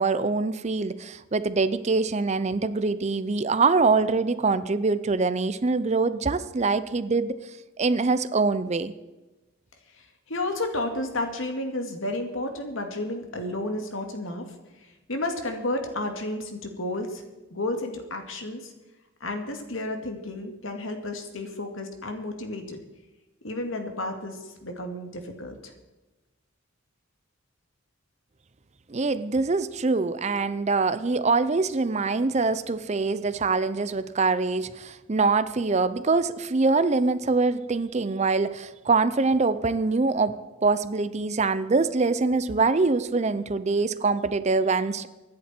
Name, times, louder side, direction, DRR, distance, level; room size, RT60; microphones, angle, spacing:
voice 1, 0.0-7.3 7.8-8.9 28.9-45.1, right 3 dB, 30° right, 14 dB, 0.5 m, -24 dB
voice 2, 10.3-14.5 15.1-17.2 17.5-18.7 19.2-22.8 23.4-25.5, left 2 dB, 65° left, 5 dB, 2.3 m, -31 dB
24.5 x 10.5 x 4.4 m, 1.1 s
head